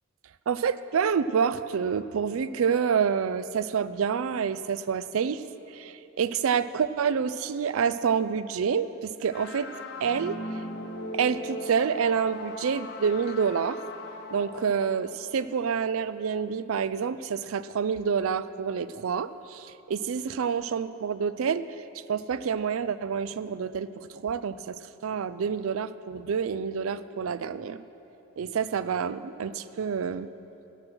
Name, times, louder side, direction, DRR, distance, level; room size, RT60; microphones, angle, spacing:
voice 1, 0.5-5.4 5.7-9.7 10.0-10.4 11.1-13.8 14.3-21.6 22.1-27.8 28.4-30.3, right 6 dB, 75° right, 14 dB, 0.4 m, -28 dB
sound 1, 9.3-16.2, left 1 dB, 55° left, 0.8 m, -39 dB
18.0 x 6.1 x 6.1 m, 2.9 s
head